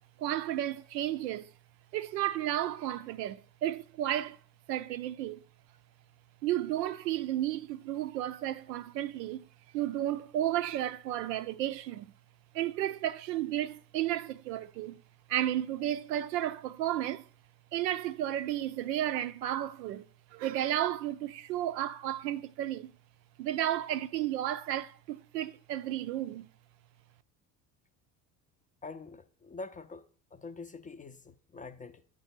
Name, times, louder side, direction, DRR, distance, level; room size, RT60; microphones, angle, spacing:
voice 1, 0.2-1.5 1.9-4.4 4.7-5.4 6.4-9.4 9.7-12.1 12.5-15.0 15.3-17.3 17.7-20.0 20.3-22.9 23.4-26.5, right 12 dB, 90° right, 0.6 m, -33 dB
voice 2, 28.8-30.0 30.3-32.0, left 3 dB, 20° left, 0.4 m, -45 dB
8.1 x 3.4 x 5.9 m
hypercardioid pair, 75°, 48 cm